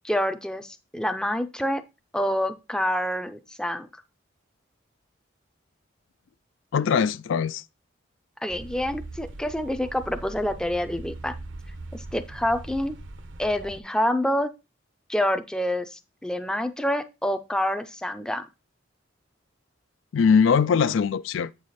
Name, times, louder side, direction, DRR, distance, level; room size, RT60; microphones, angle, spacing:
voice 1, 0.0-1.8 2.1-3.9 8.4-11.4 11.9-13.0 13.4-14.5 15.1-18.5, left 1 dB, 5° left, 0.5 m, -27 dB
voice 2, 6.7-7.6 20.1-21.5, left 6 dB, 75° left, 0.3 m, -21 dB
sound 1, 8.5-13.8, right 2 dB, 75° right, 0.9 m, -41 dB
8.3 x 4.8 x 4.2 m
head